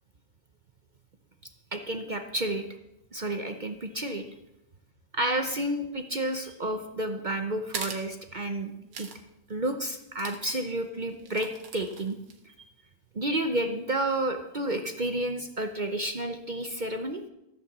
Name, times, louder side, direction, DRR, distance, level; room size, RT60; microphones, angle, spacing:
voice 1, 1.7-2.6 3.1-4.3 5.1-8.7 9.0-9.1 9.5-12.2 12.4-12.7 13.1-17.2, right 1 dB, 50° right, 6 dB, 0.5 m, -31 dB
sound 1, 7.7-8.0 8.9-9.2 9.5-9.6 10.1-10.6 11.2-12.4, right 6 dB, 80° right, 2.0 m, -39 dB
14.0 x 6.5 x 7.3 m, 0.88 s
omnidirectional pair, 1.9 m